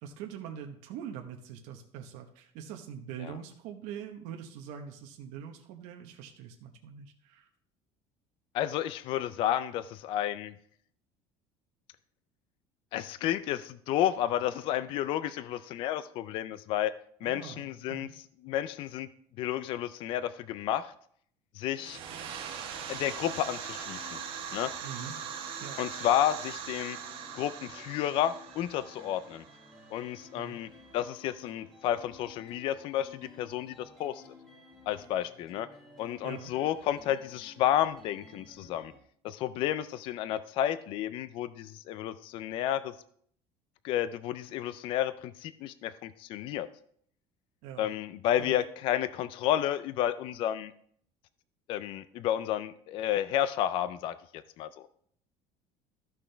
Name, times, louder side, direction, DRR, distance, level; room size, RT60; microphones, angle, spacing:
voice 1, 0.0-7.5 17.2-18.1 24.8-25.1 25.6-25.8 30.3-30.6 36.2-36.5 47.6-47.9 48.4-48.6, right 8 dB, 70° right, 3 dB, 1.0 m, -43 dB
voice 2, 8.5-10.5 12.9-16.9 17.2-18.1 18.4-19.1 19.4-20.9 21.5-22.0 22.9-24.2 24.5-24.7 25.8-27.0 27.3-29.4 29.9-34.2 34.9-35.7 36.0-38.9 39.2-42.9 43.8-46.7 47.8-50.7 51.7-54.9, left 11 dB, 45° left, 14 dB, 0.3 m, -31 dB
sound 1, 21.7-30.3, right 7 dB, 45° right, 1.3 m, -41 dB
sound 2, 23.0-39.0, left 2 dB, 5° left, 1.6 m, -54 dB
13.0 x 6.1 x 3.3 m, 0.63 s
cardioid pair, 170°, 12 cm